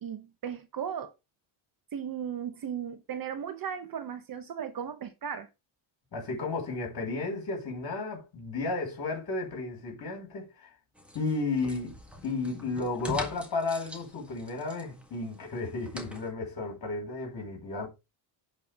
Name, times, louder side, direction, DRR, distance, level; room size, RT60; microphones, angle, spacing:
voice 1, 0.0-1.1 1.9-5.5, right 8 dB, 45° right, 1.0 m, -36 dB
voice 2, 6.1-10.5 11.1-11.9 12.2-17.9, left 3 dB, 45° left, 5.4 m, -33 dB
sound 1, 11.0-16.3, left 2 dB, ahead, 1.7 m, -43 dB
10.5 x 4.7 x 3.5 m
cardioid pair, 125°, 49 cm